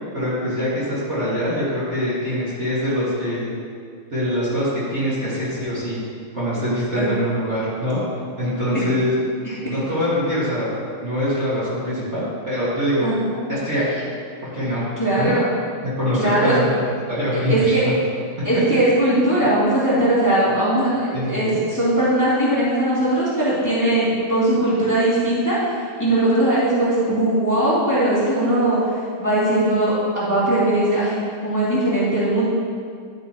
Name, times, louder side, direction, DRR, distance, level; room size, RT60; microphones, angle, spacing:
voice 1, 0.1-3.5 4.1-6.0 6.3-8.0 8.4-9.1 9.7-10.7 11.0-13.1 13.5-14.1 14.4-14.9 15.2-15.3 15.8-17.9 21.1-21.6, equal, 35° right, -9 dB, 2.1 m, -24 dB
voice 2, 13.0-13.4 15.0-15.5 16.2-16.6 17.5-17.8 18.4-28.9 29.2-31.1 31.4-32.4, right 1 dB, 10° left, -10 dB, 2.2 m, -19 dB
11.0 x 8.9 x 3.0 m, 2.2 s
omnidirectional pair, 2.3 m